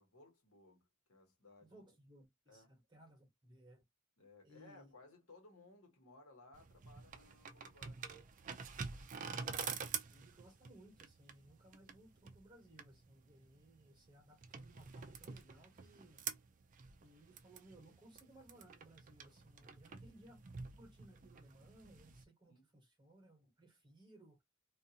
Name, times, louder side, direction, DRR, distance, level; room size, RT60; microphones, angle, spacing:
voice 1, 0.0-1.9 2.5-2.7 4.2-8.2 22.5-22.7, left 2 dB, 80° left, 1.1 m, -62 dB
voice 2, 1.6-3.8 4.4-4.9 9.2-16.2 17.0-20.4 20.8-24.4, right 1 dB, 20° right, 1.1 m, -62 dB
sound 1, 6.5-22.2, right 6 dB, 40° right, 0.4 m, -48 dB
2.4 x 2.4 x 2.7 m
head